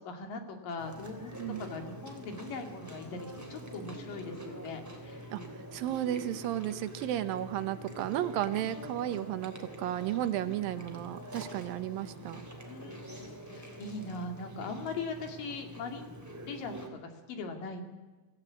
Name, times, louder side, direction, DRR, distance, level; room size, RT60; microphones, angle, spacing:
voice 1, 0.0-1.3 1.6-5.3 10.4-11.1 12.7-16.2 16.4-17.8, left 3 dB, 65° left, 5 dB, 3.8 m, -41 dB
Chewing mastication, 0.8-16.9, right 1 dB, 5° right, 2.7 m, -45 dB
voice 2, 5.7-12.4, right 12 dB, 75° right, 12 dB, 2.6 m, -33 dB
26.0 x 15.0 x 8.4 m, 1.3 s
omnidirectional pair, 4.2 m